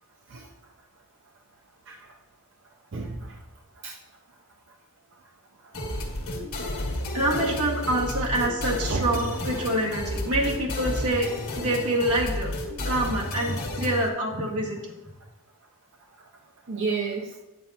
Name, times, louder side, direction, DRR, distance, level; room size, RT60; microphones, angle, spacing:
voice 1, 2.9-3.3 3.8-3.9 8.9-9.6 16.7-17.3, right 4 dB, 55° right, 0 dB, 0.6 m, -30 dB
sound 1, 5.7-14.1, left 1 dB, 70° left, 1.4 m, -32 dB
voice 2, 7.1-12.5 12.8-14.9, right 1 dB, 85° right, -3 dB, 1.9 m, -26 dB
9.2 x 7.5 x 2.9 m, 0.99 s
head